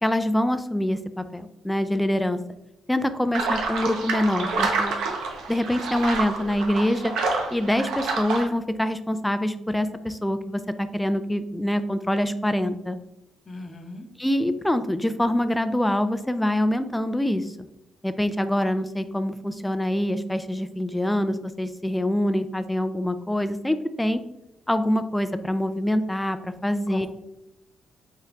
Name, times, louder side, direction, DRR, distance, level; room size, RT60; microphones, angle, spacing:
voice 1, 0.0-2.4 2.9-4.9 5.5-7.1 7.5-13.0 14.2-17.5 18.0-24.2 24.7-27.1, left 1 dB, 5° left, 10 dB, 0.4 m, -25 dB
sound 1, 3.3-8.4, right 3 dB, 85° right, 0.8 m, -28 dB
voice 2, 13.5-14.1 26.9-27.1, left 2 dB, 40° left, 4 dB, 0.8 m, -38 dB
5.1 x 4.3 x 2.4 m, 0.86 s
cardioid pair, 90°, 0 cm